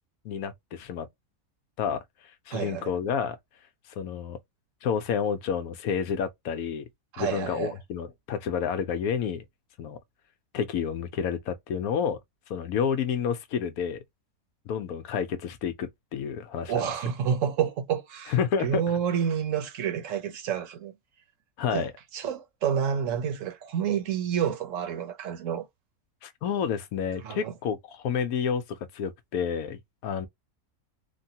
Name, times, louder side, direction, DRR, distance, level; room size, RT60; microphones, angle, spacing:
voice 1, 0.2-1.1 1.8-2.0 2.5-3.4 4.0-4.4 4.8-6.9 7.2-9.4 9.8-10.0 10.5-12.2 12.5-14.0 14.7-16.9 18.3-18.8 21.6-21.9 26.2-30.3, left 7 dB, 70° left, 1.0 m, -29 dB
voice 2, 2.5-2.9 7.1-7.7 16.7-20.9 21.7-25.7 27.2-27.5, right 8 dB, 60° right, 1.0 m, -29 dB
3.2 x 2.2 x 2.8 m
omnidirectional pair, 1.6 m